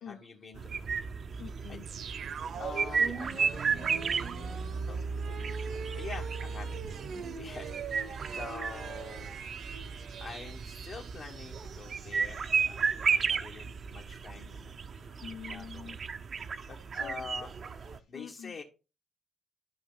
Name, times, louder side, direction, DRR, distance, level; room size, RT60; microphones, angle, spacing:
voice 1, 0.0-1.8 2.1-2.3 2.6-4.6 4.9-9.3 10.2-15.2 15.4-16.0 16.7-17.6 18.1-18.6, left 4 dB, 55° left, 1.3 m, -47 dB
sound 1, 0.5-18.0, right 5 dB, 50° right, 0.6 m, -34 dB
voice 2, 0.7-1.9 4.6-4.7 5.6-5.9 7.5-7.6 9.6-10.3 11.9-12.4 13.2-13.3 14.9-16.0 16.3-17.3 17.6-18.5, left 8 dB, 75° left, 0.5 m, -49 dB
sound 2, 1.9-12.7 13.0-13.1, right 5 dB, 65° right, 1.0 m, -40 dB
11.0 x 5.3 x 3.9 m
cardioid pair, 90°, 0 cm